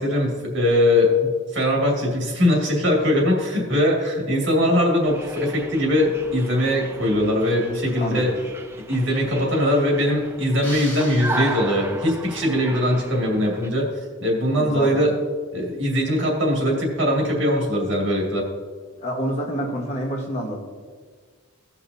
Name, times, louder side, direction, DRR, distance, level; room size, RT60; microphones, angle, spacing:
voice 1, 0.0-8.3 8.9-13.9 14.2-15.1 15.5-18.5, left 1 dB, 60° right, -2 dB, 2.2 m, -21 dB
sound 1, 5.0-13.7, right 2 dB, 10° right, 0.5 m, -35 dB
voice 2, 8.0-8.4 14.6-15.1 19.0-20.6, equal, 30° left, 0 dB, 1.3 m, -27 dB
sound 2, 10.6-12.2, left 1 dB, 10° left, 1.7 m, -38 dB
16.5 x 5.9 x 2.7 m, 1.5 s
head